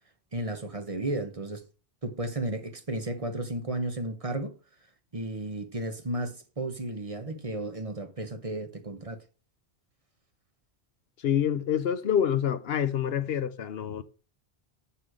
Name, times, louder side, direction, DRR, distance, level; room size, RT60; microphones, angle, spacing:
voice 1, 0.3-1.6 2.0-4.5 5.1-9.2, right 1 dB, 35° right, 1.1 m, -33 dB
voice 2, 11.2-14.0, left 9 dB, 70° left, 0.9 m, -27 dB
7.7 x 5.6 x 6.3 m
omnidirectional pair, 1.1 m